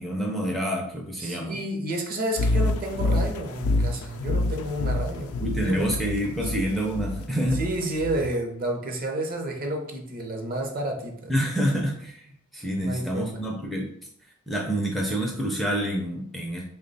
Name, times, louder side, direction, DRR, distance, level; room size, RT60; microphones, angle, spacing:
voice 1, 0.0-1.6 5.4-7.6 11.3-13.9 14.5-16.6, equal, ahead, -1 dB, 0.4 m, -27 dB
voice 2, 1.2-5.9 7.6-11.3 12.8-13.4, right 1 dB, 40° right, 2 dB, 0.7 m, -30 dB
sound 1, 2.4-8.4, left 2 dB, 80° left, 0.3 m, -27 dB
3.5 x 2.2 x 3.9 m, 0.66 s
head